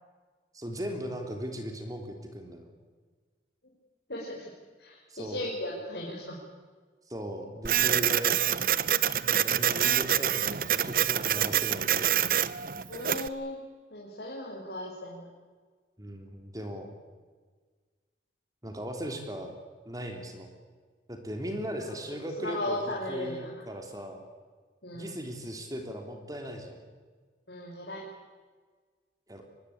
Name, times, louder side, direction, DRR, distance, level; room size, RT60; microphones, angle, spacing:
voice 1, 0.5-2.7 5.1-5.5 7.1-8.4 9.3-12.2 16.0-16.9 18.6-19.5 19.8-20.5 21.1-24.2 24.9-26.8 29.3-29.4, equal, 20° right, 4 dB, 3.2 m, -38 dB
voice 2, 4.1-4.5 4.8-6.4 12.9-13.6 13.9-15.3 22.4-23.6 24.8-25.2 27.5-28.0, left 1 dB, 75° left, -3 dB, 5.2 m, -36 dB
Printer, 7.6-13.3, right 10 dB, 55° right, 0.7 m, -26 dB
24.5 x 19.5 x 8.7 m, 1.5 s
head